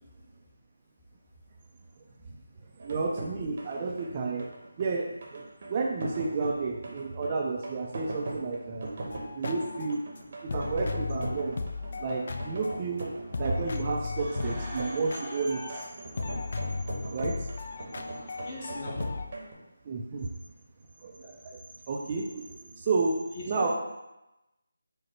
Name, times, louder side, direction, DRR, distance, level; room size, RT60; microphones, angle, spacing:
voice 1, 2.8-4.5 4.8-8.9 9.3-10.0 10.4-11.5 12.0-13.1 13.4-15.9 17.1-17.5 19.9-20.3 21.0-21.6 21.9-23.2 23.4-23.7, right 4 dB, 30° right, 0 dB, 0.4 m, -31 dB
sound 1, 2.8-19.5, right 2 dB, 45° right, 0.8 m, -40 dB
sound 2, 9.1-13.0 13.3-15.9 16.2-19.3, left 4 dB, 50° left, 0.3 m, -36 dB
sound 3, 11.3-19.2, equal, ahead, 0.7 m, -49 dB
voice 2, 18.4-19.1 23.3-23.7, left 2 dB, 35° left, -4 dB, 1.0 m, -39 dB
4.8 x 2.1 x 4.3 m, 0.95 s
figure-of-eight pair, 160°, 0 cm